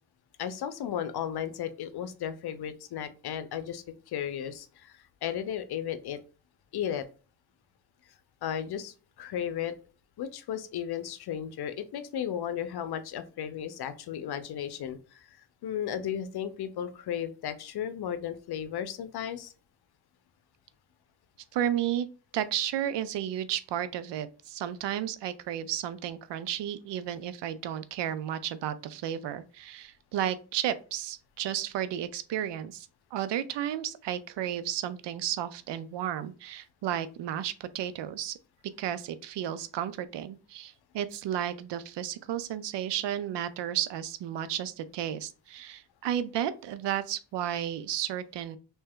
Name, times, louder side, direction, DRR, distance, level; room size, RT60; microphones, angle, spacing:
voice 1, 0.4-6.2 6.7-7.0 8.4-9.7 10.2-15.4 15.6-19.5, left 9 dB, 65° left, 11 dB, 0.6 m, -35 dB
voice 2, 21.5-22.1 22.3-38.4 38.8-48.6, right 11 dB, 80° right, 14 dB, 0.6 m, -33 dB
3.2 x 2.8 x 3.5 m, 0.35 s
cardioid pair, 80°, 42 cm